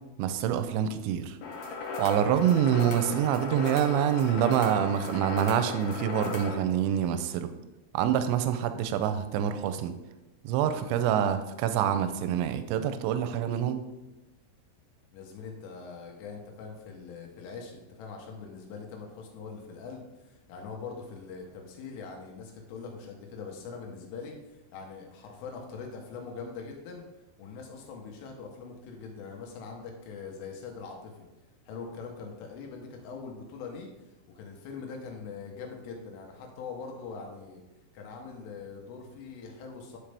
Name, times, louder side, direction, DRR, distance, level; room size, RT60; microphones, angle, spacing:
voice 1, 0.2-1.4 2.0-7.5 7.9-9.9 10.4-13.8, right 9 dB, 80° right, 10 dB, 2.7 m, -26 dB
sound 1, 1.4-6.6, left 3 dB, 70° left, 2.7 m, -36 dB
voice 2, 15.1-24.4 24.7-27.0 27.4-31.3 31.7-37.6 37.9-40.0, left 5 dB, 85° left, 1 dB, 3.7 m, -42 dB
10.5 x 5.3 x 3.4 m, 1.0 s
omnidirectional pair, 5.6 m